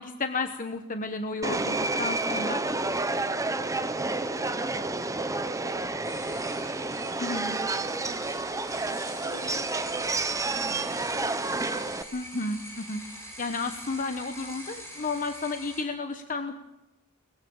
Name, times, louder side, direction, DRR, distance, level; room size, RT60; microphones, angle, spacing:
voice 1, 0.0-2.6 7.2-7.6 12.1-13.0 13.4-16.6, left 3 dB, 40° left, 7 dB, 1.1 m, -32 dB
Subway metro underground, 1.4-12.0, right 3 dB, 15° right, 0.9 m, -30 dB
sound 1, 6.0-15.8, equal, 15° left, 7.5 m, -44 dB
voice 2, 8.9-11.5, left 1 dB, 60° left, 3 dB, 3.5 m, -51 dB
21.5 x 21.5 x 7.2 m, 0.98 s
head